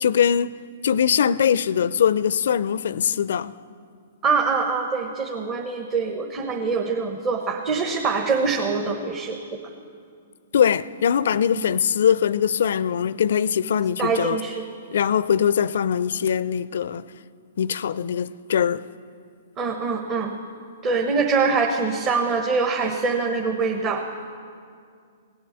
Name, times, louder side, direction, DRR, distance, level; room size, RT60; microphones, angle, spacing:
voice 1, 0.0-0.5 0.8-3.5 10.5-14.4 14.9-17.0 17.6-18.8, left 8 dB, 65° left, 0.4 m, -21 dB
voice 2, 4.2-9.6 11.5-11.6 14.0-14.6 19.6-20.3 20.8-24.0, right 4 dB, 30° right, 1.2 m, -24 dB
17.5 x 8.6 x 8.1 m
hypercardioid pair, 120°, 0 cm